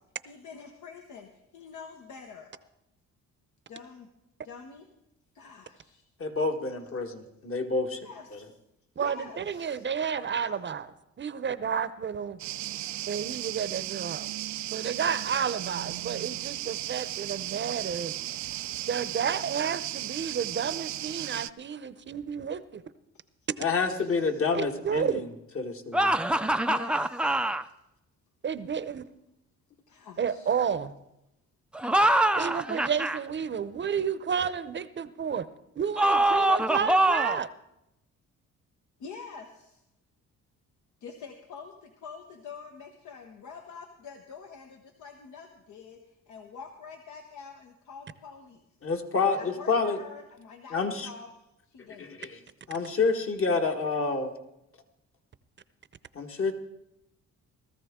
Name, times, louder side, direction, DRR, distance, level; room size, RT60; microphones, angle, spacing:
voice 1, 0.3-2.6 3.7-4.1 4.4-4.9 5.3-6.1 8.0-8.5 9.0-9.9 23.9-24.4 26.7-27.7 29.9-30.5 39.0-39.8 41.0-48.6 49.3-52.1, left 5 dB, 75° left, 4 dB, 1.2 m, -46 dB
voice 2, 6.2-8.4 23.6-25.3 25.5-26.1 48.8-50.0 50.7-51.1 52.0-52.4 52.7-54.3 56.1-56.5, left 4 dB, 45° left, 4 dB, 1.6 m, -28 dB
voice 3, 9.0-12.4 13.1-14.3 14.7-18.1 18.9-22.8 24.5-25.2 28.4-29.0 30.2-30.9 32.3-35.5 35.8-37.5, right 7 dB, 40° right, 14 dB, 0.7 m, -31 dB
sound 1, 12.4-21.5, right 15 dB, 70° right, 0.4 m, -35 dB
sound 2, 25.9-27.6 31.7-33.2 36.0-37.4, right 1 dB, 5° right, 0.4 m, -24 dB
18.0 x 13.5 x 3.7 m, 0.87 s
cardioid pair, 90°, 30 cm